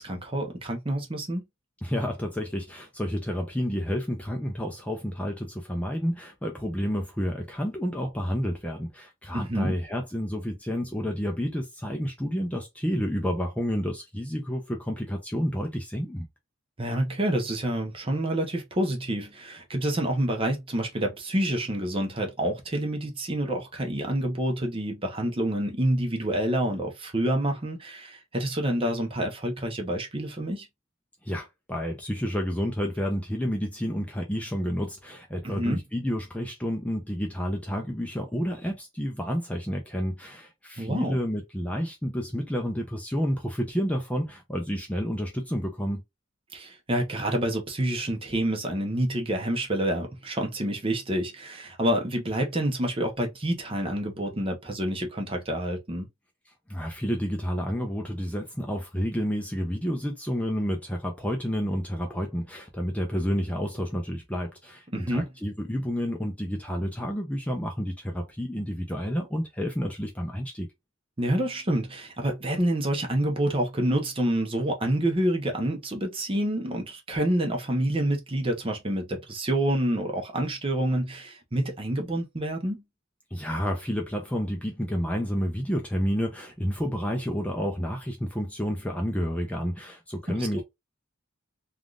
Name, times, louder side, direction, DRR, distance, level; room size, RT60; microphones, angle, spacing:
voice 1, 0.0-1.4 9.3-9.8 16.8-30.7 35.4-35.8 40.8-41.2 46.5-56.1 64.9-65.2 71.2-82.8 90.3-90.6, right 1 dB, 25° right, 0.8 m, -28 dB
voice 2, 1.8-16.3 31.2-46.0 56.7-70.7 83.3-90.6, equal, 5° left, 0.5 m, -30 dB
3.5 x 2.4 x 2.4 m
head